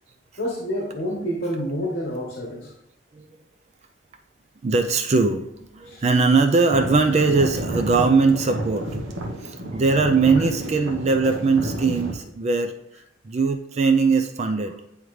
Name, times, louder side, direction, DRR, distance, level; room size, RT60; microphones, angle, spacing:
voice 1, 0.4-2.7 5.9-6.0, equal, 55° left, -1 dB, 1.2 m, -28 dB
voice 2, 4.6-5.5 5.7-8.9 9.4-12.7 13.2-14.8, right 4 dB, 35° right, 6 dB, 0.4 m, -20 dB
sound 1, 6.7-12.1, right 1 dB, 85° right, 1.0 m, -31 dB
9.3 x 3.6 x 3.1 m, 0.77 s
head